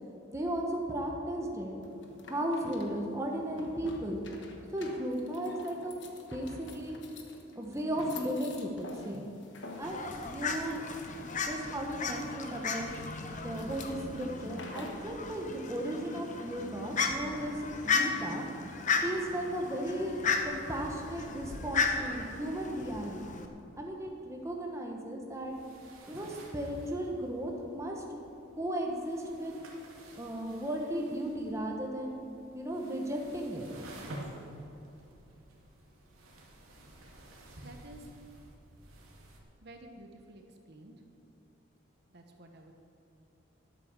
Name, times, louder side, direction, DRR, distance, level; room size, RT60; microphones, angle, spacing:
voice 1, 0.3-1.8 2.3-4.3 4.7-5.9 6.3-7.0 7.5-9.2 9.8-10.8 11.5-12.9 13.4-18.4 19.0-20.2 20.4-23.4 23.8-25.5 26.1-28.0 28.6-29.5 30.1-32.2 32.5-33.7, right 1 dB, 15° right, 0 dB, 1.2 m, -35 dB
sound 1, 1.8-15.1, left 3 dB, 60° left, 1.2 m, -49 dB
Fowl, 9.8-23.5, left 4 dB, 35° left, 0.9 m, -35 dB
sound 2, 25.3-39.4, right 1 dB, 90° right, 2.1 m, -51 dB
voice 2, 37.6-38.1 39.6-40.4 40.7-40.9 42.1-42.8, right 1 dB, 55° right, 3 dB, 1.1 m, -51 dB
12.0 x 8.3 x 6.7 m, 2.9 s
head